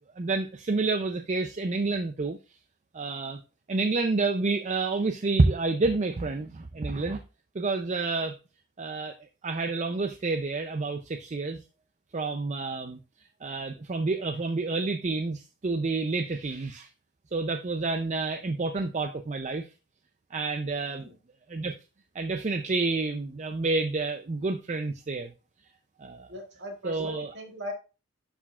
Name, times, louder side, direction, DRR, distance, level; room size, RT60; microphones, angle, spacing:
voice 1, 0.2-2.4 2.9-3.4 3.7-7.2 7.5-8.4 8.8-9.1 9.4-11.6 12.1-13.0 13.4-16.9 17.3-19.7 20.3-21.1 21.5-21.7 22.1-25.3 26.0-26.3 26.8-27.3, right 3 dB, 35° right, 6 dB, 0.4 m, -29 dB
voice 2, 26.3-27.7, left 1 dB, 55° right, 2 dB, 1.8 m, -39 dB
11.0 x 4.8 x 2.4 m, 0.30 s
head